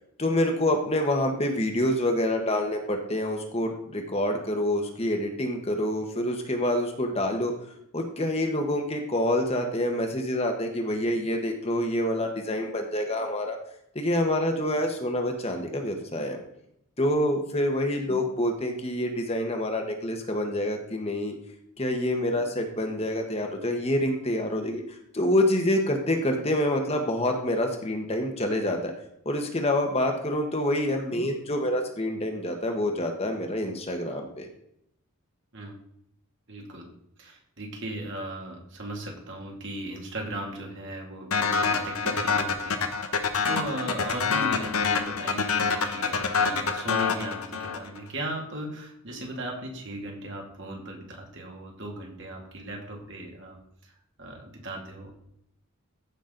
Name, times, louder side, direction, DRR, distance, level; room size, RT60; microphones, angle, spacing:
voice 1, 0.2-7.5 7.9-13.6 13.9-16.4 17.0-21.3 21.8-24.8 25.1-28.9 29.2-34.5, left 1 dB, 25° left, 3 dB, 1.2 m, -27 dB
voice 2, 36.5-36.9 37.2-53.9 54.2-55.1, right 1 dB, 55° right, 0 dB, 2.4 m, -37 dB
sound 1, 41.3-48.0, left 5 dB, 75° left, 1.1 m, -26 dB
15.0 x 6.1 x 3.9 m, 0.74 s
head